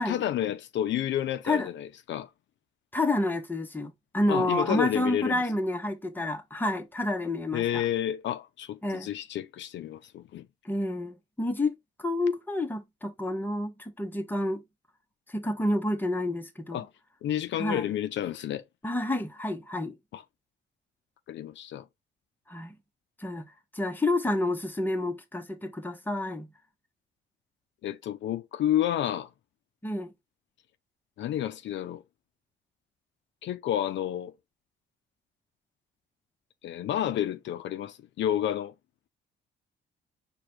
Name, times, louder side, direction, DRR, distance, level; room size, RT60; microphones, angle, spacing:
voice 1, 0.0-2.3 4.3-5.4 7.5-10.5 16.7-16.9 17.2-18.6 20.1-20.2 21.3-21.8 27.8-29.3 31.2-32.0 33.4-34.3 36.6-38.7, left 11 dB, 65° left, 0.5 m, -30 dB
voice 2, 2.9-7.8 8.8-9.1 10.6-14.6 15.3-16.8 17.6-17.9 18.8-20.0 22.5-22.7 23.2-26.5 29.8-30.1, left 1 dB, 10° left, 1.0 m, -29 dB
4.9 x 2.3 x 4.3 m
cardioid pair, 90°, 20 cm